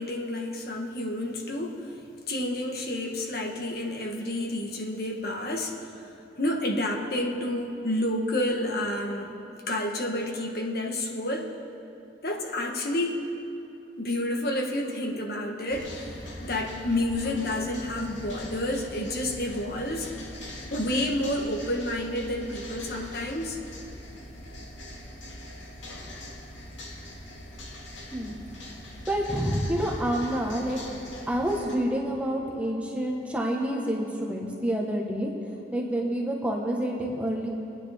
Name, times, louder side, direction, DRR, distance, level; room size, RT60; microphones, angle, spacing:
voice 1, 0.0-2.0 2.3-6.1 6.4-9.4 9.7-11.5 12.2-13.2 14.0-15.9 16.4-20.1 20.7-23.6, left 1 dB, 55° left, 2 dB, 1.2 m, -29 dB
sound 1, 15.7-31.8, left 1 dB, 80° left, 2.0 m, -42 dB
voice 2, 29.1-30.8 31.3-35.3 35.7-37.5, equal, 5° right, -1 dB, 1.1 m, -28 dB
22.5 x 9.7 x 3.5 m, 3.0 s
head